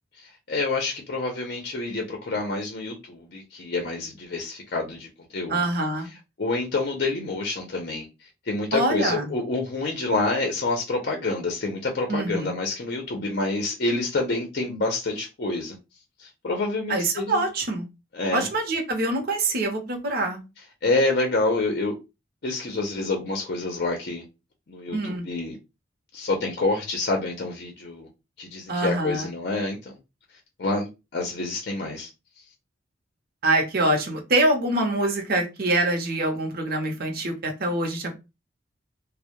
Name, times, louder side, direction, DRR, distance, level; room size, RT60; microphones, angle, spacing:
voice 1, 0.5-5.6 6.4-8.1 8.5-15.8 16.2-17.4 18.1-18.5 20.8-21.9 22.4-24.2 24.7-25.6 26.1-28.1 28.4-30.0 30.6-32.1, left 2 dB, 55° left, 0.5 m, -27 dB
voice 2, 5.5-6.1 8.7-9.3 12.1-12.5 16.9-17.9 18.3-20.4 24.9-25.2 28.7-29.3 33.4-38.1, right 2 dB, 55° right, 0.6 m, -25 dB
2.2 x 2.0 x 2.8 m
head